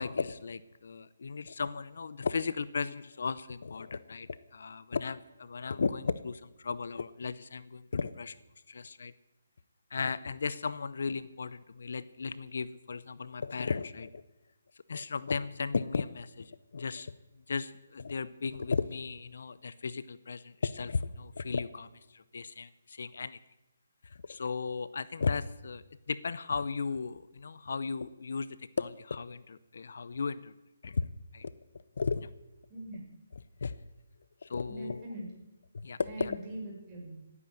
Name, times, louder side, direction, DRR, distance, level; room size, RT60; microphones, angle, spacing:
voice 1, 0.0-8.4 8.7-9.1 9.9-14.2 14.9-17.1 17.5-23.4 24.0-30.5 30.8-31.1 31.3-31.5 32.0-32.3 33.6-33.7 34.4-35.1 35.7-36.4, left 5 dB, 70° left, 16 dB, 0.7 m, -35 dB
voice 2, 32.7-33.0 34.7-35.2 36.0-37.2, right 1 dB, 25° right, -2 dB, 5.8 m, -42 dB
16.0 x 9.6 x 7.7 m, 0.97 s
hypercardioid pair, 155°, 0 cm